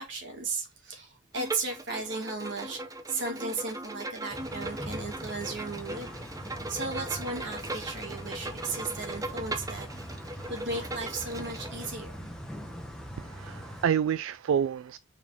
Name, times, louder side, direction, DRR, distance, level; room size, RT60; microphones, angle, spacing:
voice 1, 0.0-6.1 6.7-9.9 10.5-12.1, right 3 dB, 60° right, 2.2 m, -35 dB
Bowed string instrument, 1.3-11.9, right 2 dB, 15° right, 0.7 m, -39 dB
sound 1, 4.3-13.9, equal, 5° left, 1.2 m, -42 dB
voice 2, 13.2-15.0, right 8 dB, 75° right, 0.3 m, -28 dB
5.9 x 4.6 x 3.5 m
head